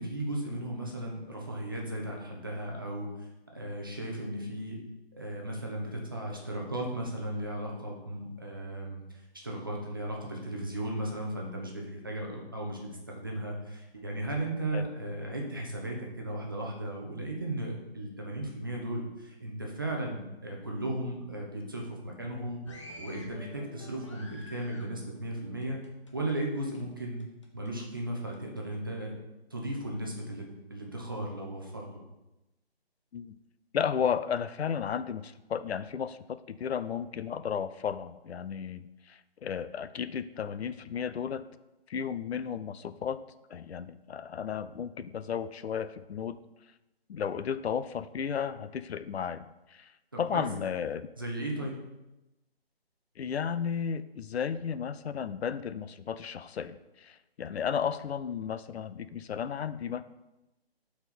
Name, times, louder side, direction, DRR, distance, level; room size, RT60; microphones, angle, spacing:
voice 1, 0.0-3.1 3.5-4.8 5.2-9.0 9.3-22.6 23.0-25.8 26.1-27.2 27.5-29.1 29.5-30.4 30.7-31.9 50.1-50.4 51.2-51.8, right 1 dB, 20° right, -1 dB, 0.6 m, -36 dB
sound 1, 22.7-26.4 26.7-27.7 28.3-28.6, left 1 dB, 30° left, 0.7 m, -50 dB
voice 2, 33.7-41.4 41.9-43.2 43.5-46.4 47.1-49.9 50.2-51.1 51.6-51.7 53.2-60.0, left 7 dB, 80° left, 14 dB, 0.5 m, -34 dB
4.7 x 4.3 x 5.2 m, 0.98 s
hypercardioid pair, 165°, 32 cm